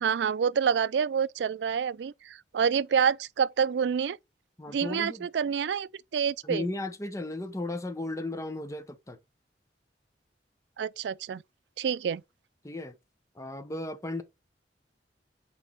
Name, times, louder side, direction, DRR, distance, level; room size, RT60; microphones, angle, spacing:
voice 1, 0.0-4.2 4.7-6.6 10.8-11.4 11.8-12.2, right 7 dB, 70° right, 0.3 m, -27 dB
voice 2, 4.6-5.3 6.4-9.2 12.6-12.9 13.3-14.2, left 2 dB, 20° left, 0.9 m, -35 dB
6.3 x 4.4 x 4.1 m
head